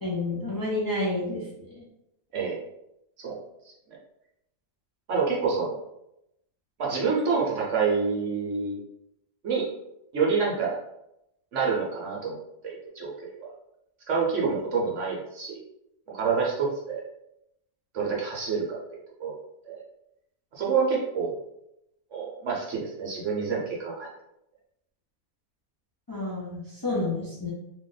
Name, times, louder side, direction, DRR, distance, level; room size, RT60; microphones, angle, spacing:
voice 1, 0.0-1.4 1.7-1.8 26.1-27.5, left 2 dB, 20° left, -6 dB, 0.5 m, -29 dB
voice 2, 5.1-5.8 6.8-8.8 9.4-9.7 10.1-10.8 11.5-13.5 14.1-15.6 16.1-17.0 17.9-19.3 19.6-19.8 20.5-21.4 22.1-24.1, right 5 dB, 60° right, -4 dB, 1.1 m, -27 dB
2.9 x 2.5 x 3.9 m, 0.84 s
omnidirectional pair, 1.6 m